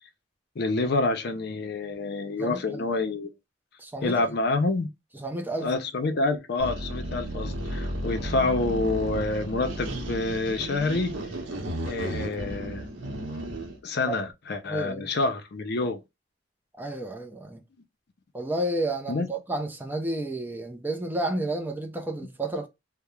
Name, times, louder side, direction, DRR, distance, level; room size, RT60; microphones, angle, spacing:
voice 1, 0.6-3.3 4.0-4.9 5.6-11.2 11.8-12.9 13.8-16.0 19.1-19.3, left 3 dB, 60° left, 0.5 m, -27 dB
voice 2, 2.4-2.8 3.8-4.3 5.2-5.7 14.1-14.2 14.7-15.1 16.8-17.6 18.3-22.7, right 1 dB, 10° right, 0.4 m, -31 dB
sound 1, 6.6-13.8, equal, 85° right, 0.7 m, -33 dB
2.3 x 2.0 x 2.9 m
head